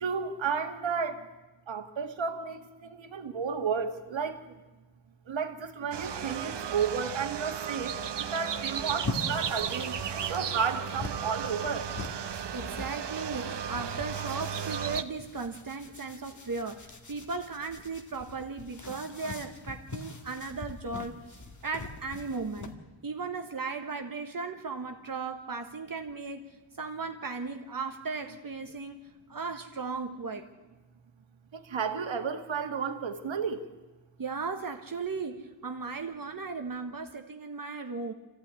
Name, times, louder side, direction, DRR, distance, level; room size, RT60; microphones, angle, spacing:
voice 1, 0.0-1.2 1.7-4.4 5.3-7.9 8.3-11.9 31.5-33.6, right 6 dB, 80° right, 7 dB, 2.0 m, -32 dB
sound 1, 5.9-15.0, right 8 dB, 65° right, 1.0 m, -35 dB
sound 2, 8.6-22.7, left 2 dB, 40° left, 2.0 m, -43 dB
voice 2, 12.5-21.4 21.6-22.7 23.0-30.5 34.2-38.1, right 4 dB, 50° right, 5 dB, 1.4 m, -36 dB
25.5 x 15.0 x 9.6 m, 1.2 s
wide cardioid pair, 140°, 45 cm